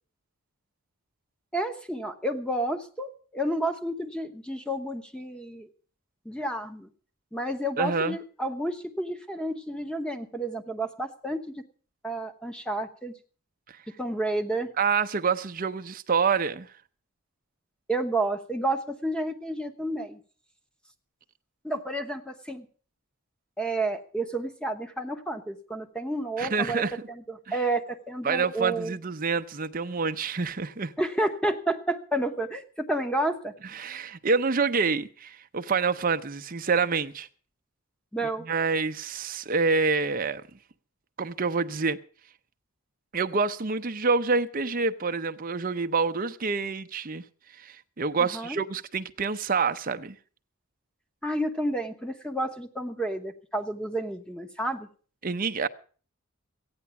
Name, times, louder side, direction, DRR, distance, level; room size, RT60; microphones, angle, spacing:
voice 1, 1.5-5.7 6.2-6.9 7.3-11.4 12.0-13.1 14.0-14.7 17.9-20.2 21.6-22.7 23.6-28.9 31.0-33.5 38.1-38.5 48.2-48.6 51.2-54.9, right 1 dB, 5° left, 1.0 m, -30 dB
voice 2, 7.8-8.2 14.8-16.7 26.4-27.0 27.5-27.6 28.2-30.9 33.7-37.3 38.4-40.4 41.2-42.0 43.1-47.2 47.6-50.2 55.2-55.7, right 4 dB, 40° right, 0.7 m, -27 dB
14.5 x 9.7 x 6.9 m
head